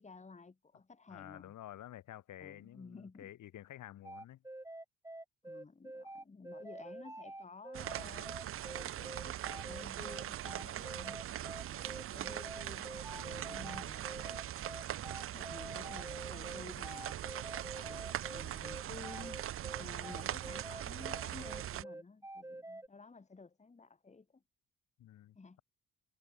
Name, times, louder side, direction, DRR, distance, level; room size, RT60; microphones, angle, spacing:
voice 1, 0.0-1.5 2.4-3.3 5.4-11.2 11.7-14.5 15.2-19.5 19.8-24.4 25.4-25.6, left 4 dB, 25° left, 2.1 m, -53 dB
voice 2, 1.1-4.4 13.1-13.7 25.0-25.6, left 13 dB, 80° left, 6.0 m, -51 dB
sound 1, 4.0-22.9, right 1 dB, 10° right, 4.9 m, -47 dB
sound 2, 7.7-21.8, right 12 dB, 45° right, 0.5 m, -41 dB
cardioid pair, 90°, 30 cm